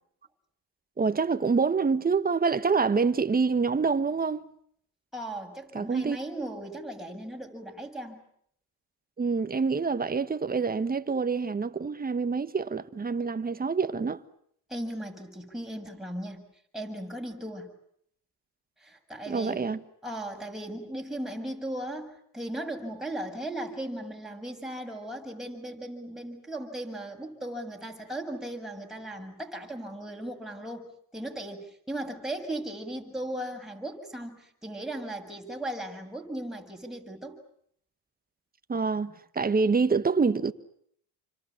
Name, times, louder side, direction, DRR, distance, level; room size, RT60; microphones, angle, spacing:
voice 1, 1.0-4.4 5.7-6.2 9.2-14.2 19.3-19.8 38.7-40.5, right 4 dB, 20° right, 1.5 m, -26 dB
voice 2, 5.1-8.2 14.7-16.4 16.7-17.7 18.8-19.7 20.0-30.8 31.1-37.4, right 1 dB, ahead, 7.3 m, -37 dB
29.5 x 25.5 x 7.3 m
supercardioid pair, 100°, 40 cm